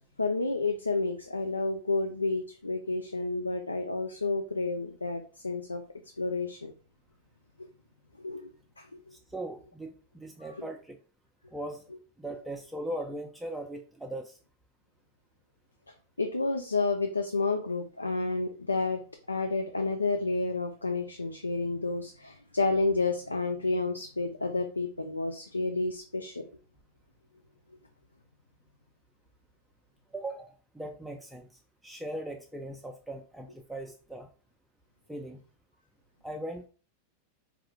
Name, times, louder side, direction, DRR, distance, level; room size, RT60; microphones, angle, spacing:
voice 1, 0.2-5.8 6.2-6.7 8.2-8.5 8.8-9.1 10.4-10.7 16.2-19.0 19.3-26.5, left 3 dB, 80° left, 4 dB, 0.3 m, -30 dB
voice 2, 9.1-11.0 11.5-11.8 12.2-14.4 30.1-31.5 31.8-34.3 35.1-35.4 36.2-36.7, right 1 dB, 5° right, 2 dB, 0.4 m, -39 dB
3.6 x 2.3 x 3.2 m, 0.38 s
figure-of-eight pair, 90°, 0 cm